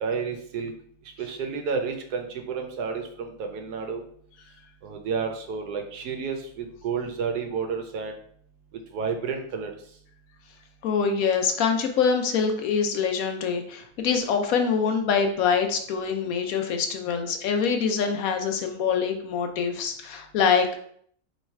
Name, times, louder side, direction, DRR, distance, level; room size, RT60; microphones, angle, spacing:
voice 1, 0.0-0.7 1.2-4.0 4.8-8.2 8.9-9.7, right 5 dB, 90° right, 4 dB, 1.3 m, -30 dB
voice 2, 10.8-20.8, left 6 dB, 70° left, 5 dB, 1.0 m, -24 dB
3.2 x 3.1 x 4.4 m, 0.62 s
omnidirectional pair, 1.7 m